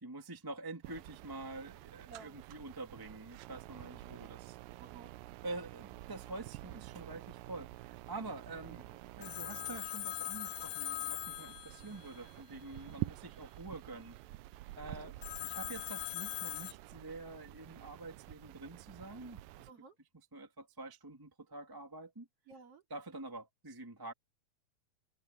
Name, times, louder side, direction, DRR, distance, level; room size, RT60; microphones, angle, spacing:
voice 1, 0.0-4.6 5.4-8.8 9.1-14.2 14.7-15.1 15.4-19.7 20.3-22.3 22.9-24.1, right 2 dB, 10° right, 1.4 m, -47 dB
sound 1, 0.8-19.7, right 18 dB, 85° right, 2.3 m, -49 dB
voice 2, 2.1-2.4 4.8-5.1 8.7-9.0 13.2-13.3 14.8-15.1 19.7-20.0 22.5-22.8, right 5 dB, 45° right, 3.3 m, -55 dB
Telephone, 9.2-12.3 15.2-16.7, left 15 dB, 85° left, 1.5 m, -41 dB
omnidirectional pair, 3.9 m